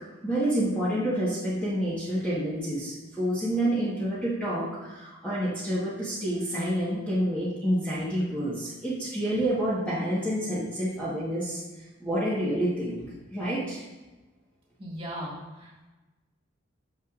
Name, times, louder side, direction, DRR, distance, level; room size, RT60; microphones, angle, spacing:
voice 1, 0.2-11.6 12.0-13.0 13.3-13.8, right 1 dB, 5° left, -10 dB, 1.2 m, -28 dB
voice 2, 14.8-15.9, equal, 25° right, -5 dB, 1.9 m, -38 dB
9.2 x 6.4 x 2.4 m, 1.1 s
head